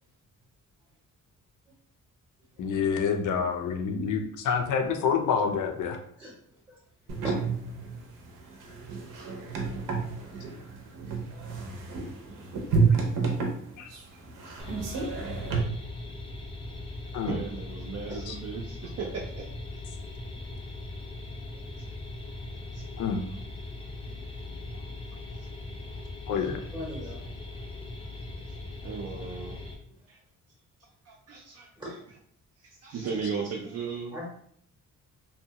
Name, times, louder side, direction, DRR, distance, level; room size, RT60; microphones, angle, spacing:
voice 1, 2.6-6.0 13.8-13.9 17.1-17.4 18.3-18.4 23.0-23.2 26.3-26.6, left 6 dB, 70° left, 5 dB, 0.5 m, -27 dB
sound 1, 7.1-15.6, right 4 dB, 90° right, 0.7 m, -30 dB
sound 2, 14.6-29.7, left 2 dB, 20° left, 0.4 m, -40 dB
voice 2, 17.3-19.5 22.7-22.8 24.2-24.3 25.4-25.5 25.9-26.0 28.5-28.6 28.8-29.7 30.1-30.2 30.8-32.0 32.6-34.2, right 5 dB, 50° right, -1 dB, 0.4 m, -37 dB
voice 3, 26.4-27.5 31.8-31.9 34.1-34.2, equal, 15° right, -5 dB, 0.7 m, -41 dB
2.7 x 2.2 x 2.8 m, 0.64 s
wide cardioid pair, 145°, 32 cm